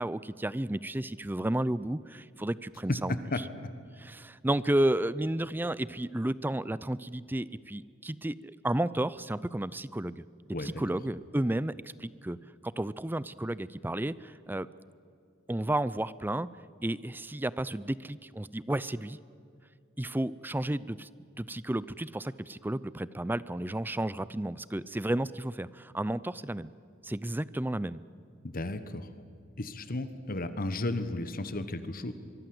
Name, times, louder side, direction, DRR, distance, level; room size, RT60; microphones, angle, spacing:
voice 1, 0.0-3.2 4.0-10.3 10.6-11.7 12.0-12.4 12.6-14.7 15.5-16.5 16.8-19.2 20.0-21.1 21.4-26.7 27.0-28.0, right 1 dB, 10° right, 18 dB, 0.5 m, -32 dB
voice 2, 2.9-3.4 10.5-10.8 28.4-29.1 29.6-32.1, left 2 dB, 45° left, 11 dB, 1.2 m, -33 dB
24.5 x 23.5 x 7.9 m, 2.4 s
head